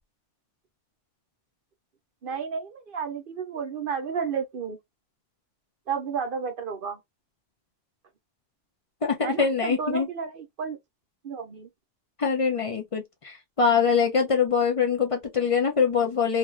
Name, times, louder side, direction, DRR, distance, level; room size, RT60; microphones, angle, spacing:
voice 1, 2.2-4.8 5.9-7.0 9.2-10.8 11.2-11.7, right 6 dB, 55° right, 0.7 m, -32 dB
voice 2, 9.0-10.1 12.2-16.4, left 6 dB, 55° left, 0.4 m, -24 dB
2.5 x 2.3 x 3.0 m
omnidirectional pair, 1.2 m